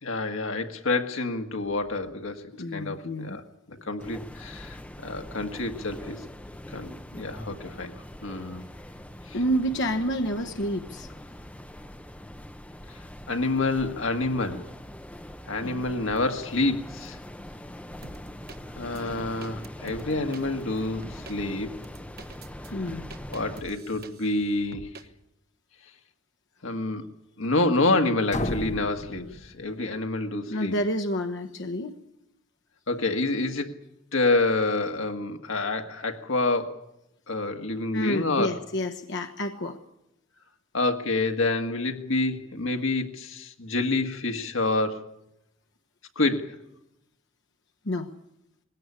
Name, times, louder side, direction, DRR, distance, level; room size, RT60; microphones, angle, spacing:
voice 1, 0.0-2.4 2.7-3.4 3.9-6.2 6.7-7.9 8.2-8.6 9.3-9.4 13.3-14.7 15.5-17.2 18.8-21.8 23.3-25.0 26.6-27.0 27.4-30.7 32.9-33.7 34.1-36.8 37.3-38.6 40.7-45.0 46.1-46.6, left 2 dB, 85° left, 5 dB, 1.8 m, -28 dB
voice 2, 2.6-3.4 9.3-11.1 15.6-15.8 22.7-23.1 30.5-31.9 37.9-39.8 47.8-48.1, equal, 65° left, 5 dB, 1.2 m, -29 dB
sound 1, 4.0-23.6, left 1 dB, 5° left, 0.9 m, -43 dB
sound 2, 18.0-18.6 19.0-20.4 21.0-21.4 21.8-24.4 24.7-25.1, right 2 dB, 55° right, 1.2 m, -44 dB
sound 3, 28.3-30.2, left 1 dB, 40° left, 1.2 m, -34 dB
20.5 x 17.0 x 9.8 m, 0.87 s
head